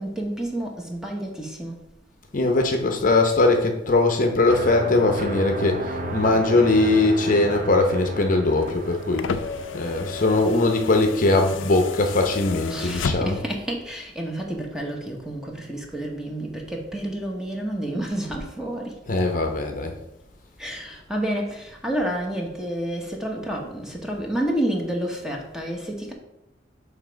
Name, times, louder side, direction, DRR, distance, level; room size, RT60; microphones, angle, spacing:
voice 1, 0.0-1.8 12.7-19.0 20.6-26.1, right 1 dB, 5° right, 0 dB, 0.9 m, -29 dB
voice 2, 2.3-9.3 9.7-13.4 19.1-19.9, left 2 dB, 45° left, 4 dB, 0.7 m, -20 dB
sound 1, 4.5-11.2, right 1 dB, 45° right, 0.7 m, -34 dB
sound 2, 8.5-13.6 14.8-14.9, left 4 dB, 85° left, 0.4 m, -33 dB
7.1 x 3.4 x 5.1 m, 0.87 s
head